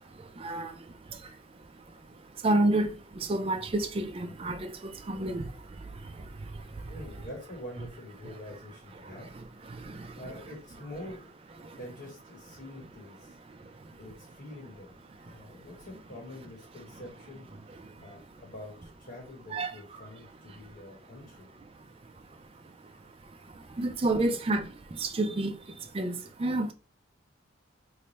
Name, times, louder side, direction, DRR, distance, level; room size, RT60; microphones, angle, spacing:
voice 1, 0.0-7.3 9.0-10.4 11.6-11.8 13.3-14.1 15.2-15.7 17.7-18.2 19.5-19.8 20.5-20.6 21.7-26.7, right 2 dB, 30° right, 0.4 m, -33 dB
voice 2, 6.9-9.3 9.9-11.3 11.8-13.4 14.0-15.0 15.2-21.5 24.3-24.4, left 1 dB, 50° left, 1.0 m, -46 dB
3.2 x 2.1 x 3.9 m
head